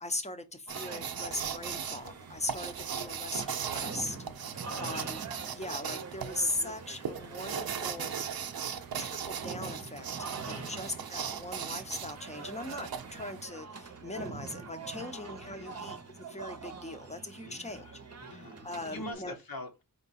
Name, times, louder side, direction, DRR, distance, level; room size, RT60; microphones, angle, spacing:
voice 1, 0.0-4.2 4.4-8.1 9.0-10.1 10.5-17.9 18.3-19.4, left 2 dB, 20° left, 0.7 m, -39 dB
sound 1, 0.7-19.1, right 4 dB, 45° right, 0.7 m, -45 dB
sound 2, 0.7-13.5, right 7 dB, 75° right, 0.5 m, -38 dB
voice 2, 4.7-5.0 10.4-10.9 14.9-15.9 17.4-19.8, left 1 dB, 75° left, 1.0 m, -46 dB
4.6 x 2.2 x 4.1 m
wide cardioid pair, 85°, 36 cm